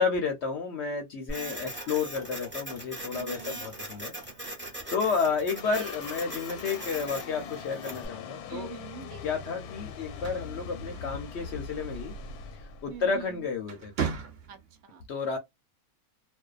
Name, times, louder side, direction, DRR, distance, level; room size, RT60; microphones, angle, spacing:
voice 1, 0.0-4.1 4.9-8.7 9.2-12.1 12.8-13.9 15.1-15.4, left 5 dB, 65° left, 0.7 m, -31 dB
Printer, 1.3-8.1, right 1 dB, 10° right, 0.7 m, -40 dB
voice 2, 1.4-1.9 3.1-3.6 5.7-6.0 8.5-9.6 12.9-13.5 14.5-15.0, right 8 dB, 75° right, 1.0 m, -45 dB
sound 1, 5.5-14.0, left 6 dB, 90° left, 1.1 m, -42 dB
sound 2, 10.0-11.5 12.9-13.2 13.6-14.8, right 6 dB, 50° right, 0.8 m, -36 dB
2.5 x 2.1 x 2.3 m
omnidirectional pair, 1.6 m